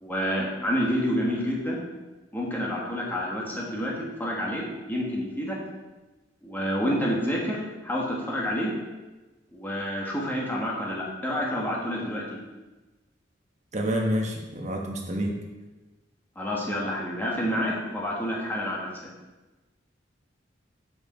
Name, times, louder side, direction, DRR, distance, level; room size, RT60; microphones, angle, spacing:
voice 1, 0.0-1.8 2.3-5.6 6.4-8.7 9.5-12.4 16.3-18.9, equal, 10° left, -4 dB, 1.6 m, -28 dB
voice 2, 13.7-15.4, equal, 40° right, 1 dB, 1.2 m, -28 dB
7.9 x 5.2 x 4.4 m, 1.1 s
head